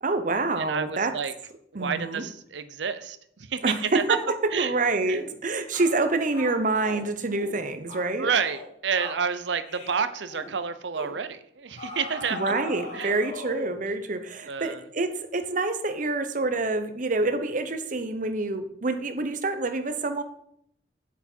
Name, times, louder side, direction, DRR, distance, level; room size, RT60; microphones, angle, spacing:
voice 1, 0.0-1.2 1.7-2.2 3.6-8.3 12.3-20.2, right 3 dB, 45° right, 9 dB, 0.9 m, -27 dB
voice 2, 0.6-1.3 1.7-4.2 4.5-4.7 5.1-5.2 8.2-12.4 12.9-13.1 14.4-14.9, right 6 dB, 75° right, 12 dB, 0.7 m, -29 dB
sound 1, 5.1-5.3 5.7-6.0 6.3-7.0 7.4-7.6 7.9-8.1 8.4-8.7 8.9-9.2 9.7-10.0 10.3-10.5 10.9-11.2 11.8-13.8, left 2 dB, 45° left, 4.4 m, -39 dB
8.3 x 7.4 x 4.5 m, 0.72 s
head